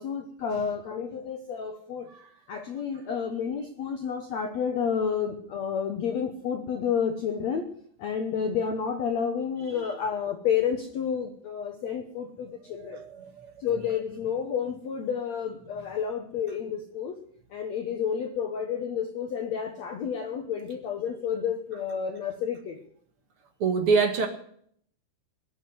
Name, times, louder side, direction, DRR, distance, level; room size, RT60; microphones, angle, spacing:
voice 1, 0.0-2.1 2.5-7.7 8.0-13.0 13.6-17.2 17.5-22.8, left 7 dB, 70° left, 5 dB, 1.6 m, -30 dB
voice 2, 12.6-13.5 23.6-24.3, right 5 dB, 50° right, 5 dB, 1.8 m, -27 dB
21.0 x 7.3 x 8.0 m, 0.64 s
omnidirectional pair, 4.7 m